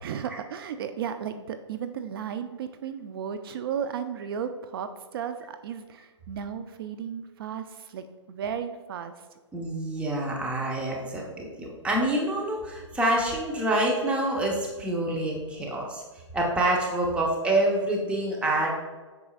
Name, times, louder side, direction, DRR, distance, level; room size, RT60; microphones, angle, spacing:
voice 1, 0.0-9.1, right 8 dB, 50° right, 9 dB, 0.5 m, -34 dB
voice 2, 9.5-16.0 16.3-18.7, right 1 dB, 5° right, -2 dB, 0.9 m, -27 dB
8.4 x 6.1 x 2.4 m, 1.3 s
hypercardioid pair, 135°, 16 cm